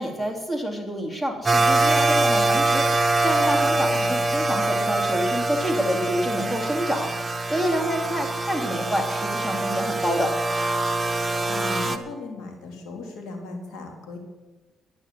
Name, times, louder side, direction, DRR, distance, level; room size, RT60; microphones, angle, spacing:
voice 1, 0.0-7.1 7.5-10.3, equal, 15° left, 3 dB, 2.9 m, -28 dB
sound 1, 1.5-12.0, right 2 dB, 20° right, 1.3 m, -24 dB
voice 2, 11.5-14.2, left 3 dB, 90° left, 3 dB, 2.9 m, -37 dB
12.5 x 9.4 x 8.2 m, 1.1 s
cardioid pair, 90°, 0 cm